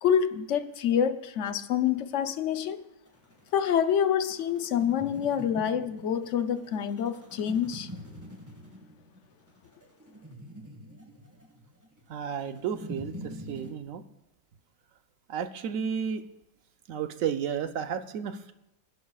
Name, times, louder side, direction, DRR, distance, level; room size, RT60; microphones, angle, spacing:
voice 1, 0.0-2.9 3.5-7.9, left 8 dB, 60° left, 0.9 m, -27 dB
sound 1, 3.1-13.7, equal, 10° right, 1.5 m, -45 dB
voice 2, 12.1-14.0 15.3-16.2 16.9-18.5, right 7 dB, 65° right, 1.0 m, -32 dB
26.5 x 11.0 x 2.3 m
omnidirectional pair, 1.6 m